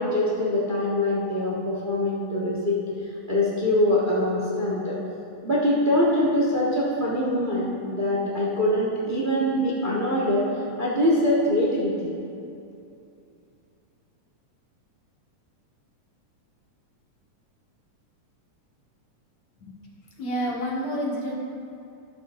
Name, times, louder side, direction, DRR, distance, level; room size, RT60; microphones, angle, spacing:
voice 1, 0.0-2.8 3.3-4.9 5.4-10.4 10.8-12.1, left 1 dB, 75° right, -6 dB, 0.4 m, -23 dB
voice 2, 20.2-21.4, equal, 60° left, -4 dB, 2.8 m, -28 dB
17.5 x 8.2 x 2.5 m, 2.6 s
omnidirectional pair, 3.6 m